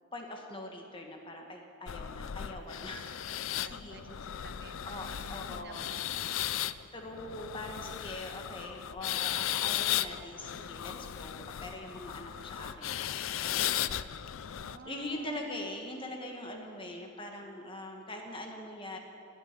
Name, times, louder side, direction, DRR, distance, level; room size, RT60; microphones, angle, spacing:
voice 1, 0.1-4.0 4.8-5.9 6.9-13.9 14.9-19.0, left 1 dB, 25° left, 2 dB, 1.3 m, -43 dB
sound 1, 1.9-14.8, left 11 dB, 75° left, 0.4 m, -36 dB
voice 2, 3.3-6.0 6.4-6.5 14.4-15.5, right 3 dB, 55° right, 6 dB, 1.1 m, -52 dB
12.5 x 9.0 x 9.6 m, 2.6 s
head